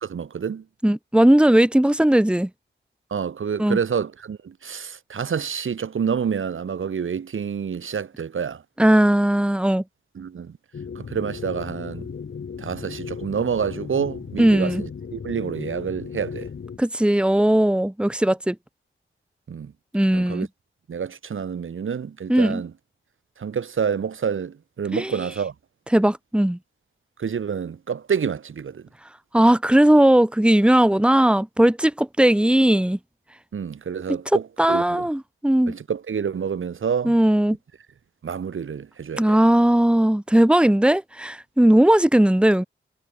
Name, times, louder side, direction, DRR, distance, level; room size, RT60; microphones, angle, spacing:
voice 1, 0.0-0.6 3.1-8.6 10.2-10.6 11.0-12.1 12.6-16.5 19.5-19.7 20.1-20.5 20.9-22.7 23.4-25.5 27.2-28.9 33.5-35.1 35.7-37.2 38.2-39.4, right 7 dB, 80° right, 3.8 m, -28 dB
voice 2, 0.8-2.5 3.6-3.8 8.8-9.8 14.4-14.8 16.8-18.6 19.9-20.5 22.3-22.6 24.9-25.1 25.9-26.6 29.3-33.0 34.6-35.7 37.0-37.6 39.2-42.6, right 1 dB, 5° right, 2.2 m, -18 dB
sound 1, 10.7-16.8, left 6 dB, 65° left, 5.3 m, -36 dB
wide cardioid pair, 170°, 20 cm